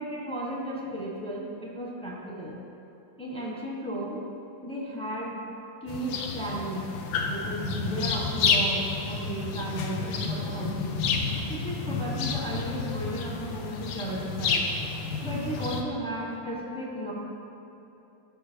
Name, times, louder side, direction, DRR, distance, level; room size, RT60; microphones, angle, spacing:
voice 1, 0.0-2.6 3.2-4.2 4.6-6.9 7.2-10.9 11.5-14.7 15.2-17.1, right 1 dB, 5° left, -3 dB, 1.2 m, -34 dB
sound 1, 5.9-15.8, left 4 dB, 80° left, 1.5 m, -30 dB
13.0 x 5.8 x 4.6 m, 2.8 s
omnidirectional pair, 2.1 m